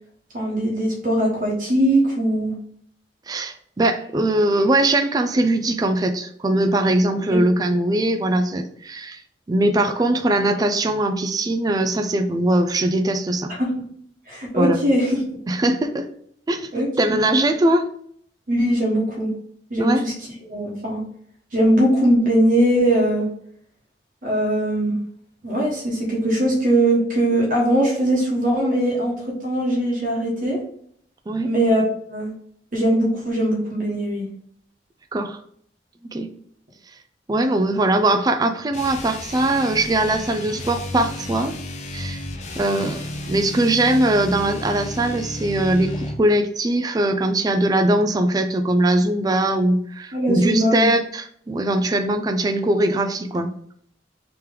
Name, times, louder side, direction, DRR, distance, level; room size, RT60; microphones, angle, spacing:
voice 1, 0.3-2.5 7.3-7.4 13.6-13.7 14.3-15.2 16.7-17.2 18.5-19.3 19.7-20.1 20.5-21.0 21.5-23.3 24.2-24.9 25.4-29.1 29.4-30.6 31.4-32.3 32.7-34.2 50.1-50.9, right 1 dB, 50° right, -3 dB, 1.0 m, -20 dB
voice 2, 3.3-9.2 9.5-13.5 14.6-14.8 15.5-16.1 16.5-17.9 19.8-20.0 31.3-31.5 35.1-35.4 36.1-36.3 37.3-41.5 41.9-42.2 42.6-53.5, right 1 dB, 20° right, 6 dB, 0.3 m, -21 dB
sound 1, 38.7-46.3, left 1 dB, 40° left, 0.5 m, -32 dB
3.3 x 2.9 x 3.6 m, 0.65 s
head